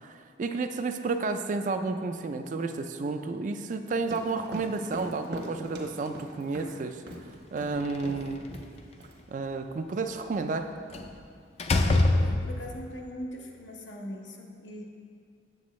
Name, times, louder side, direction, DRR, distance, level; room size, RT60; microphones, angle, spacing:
voice 1, 0.0-7.0 7.5-8.5 9.3-10.7, right 3 dB, 45° right, 7 dB, 0.3 m, -31 dB
sound 1, 4.0-6.7 7.1-7.2 7.6-7.7 8.0-8.3 8.5-9.1, right 1 dB, 60° right, 1.1 m, -40 dB
Slam, 7.8-8.8 10.9-11.2 11.6-12.8, left 2 dB, 35° left, 0.4 m, -25 dB
voice 2, 12.2-14.8, equal, 90° left, 0 dB, 1.0 m, -40 dB
7.8 x 7.4 x 3.1 m, 2.3 s
head